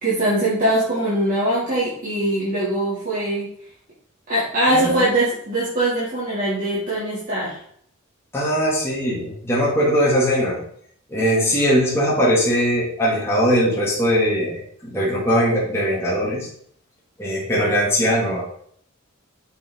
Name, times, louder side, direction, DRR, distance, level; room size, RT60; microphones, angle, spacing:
voice 1, 0.0-3.5 4.3-7.6, right 1 dB, 45° right, -10 dB, 3.7 m, -22 dB
voice 2, 4.7-5.1 8.3-10.6 11.1-16.5 17.2-18.4, equal, 15° left, -7 dB, 2.9 m, -20 dB
7.7 x 6.3 x 4.9 m, 0.64 s
head